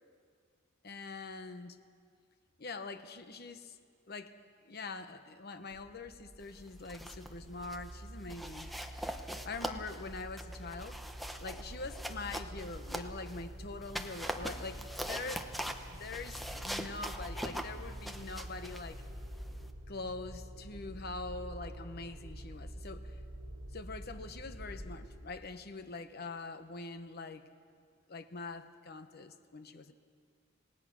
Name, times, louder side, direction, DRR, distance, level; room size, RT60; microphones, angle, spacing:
voice 1, 0.8-1.8 2.6-3.8 4.1-4.3 4.6-8.7 9.4-11.0 11.4-15.4 15.9-19.0 19.9-23.2 23.7-27.5 28.1-29.9, left 3 dB, 55° left, 9 dB, 1.1 m, -44 dB
sound 1, 5.7-25.2, right 1 dB, 30° right, 3.4 m, -47 dB
sound 2, 6.7-7.3 7.6-7.9 8.3-13.4 13.8-19.7, equal, ahead, 1.0 m, -42 dB
27.5 x 18.5 x 6.2 m, 2.2 s
head